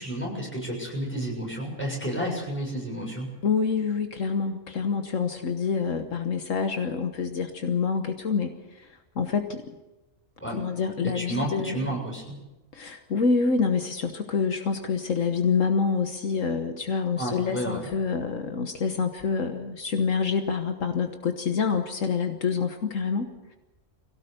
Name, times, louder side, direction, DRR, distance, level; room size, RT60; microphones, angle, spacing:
voice 1, 0.0-3.3 10.4-10.6 11.0-12.4 17.2-17.9, right 1 dB, 10° left, -2 dB, 7.0 m, -31 dB
voice 2, 3.4-8.9 9.1-9.6 10.5-11.9 12.7-23.3, left 5 dB, 70° left, 6 dB, 1.6 m, -27 dB
22.5 x 17.0 x 6.8 m, 1.0 s
omnidirectional pair, 1.4 m